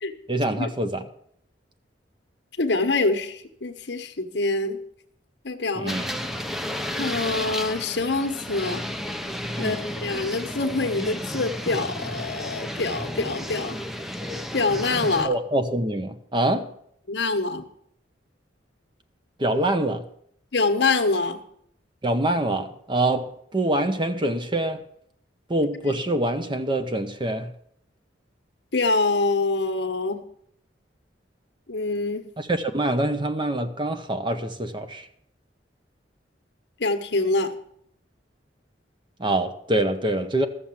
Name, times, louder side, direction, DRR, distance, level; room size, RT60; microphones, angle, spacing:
voice 1, 0.3-1.0 5.8-6.1 9.6-9.9 15.2-16.7 19.4-20.0 22.0-23.3 23.5-24.8 25.5-27.5 32.4-35.0 39.2-40.5, right 1 dB, 25° right, 0.9 m, -25 dB
voice 2, 2.6-4.8 5.4-6.0 7.0-8.9 9.6-13.8 14.5-15.3 17.1-17.6 20.5-21.4 28.7-30.2 31.7-32.3 36.8-37.5, left 3 dB, 65° left, 1.2 m, -25 dB
sound 1, 5.9-15.3, equal, ahead, 0.6 m, -32 dB
13.0 x 6.9 x 7.3 m
head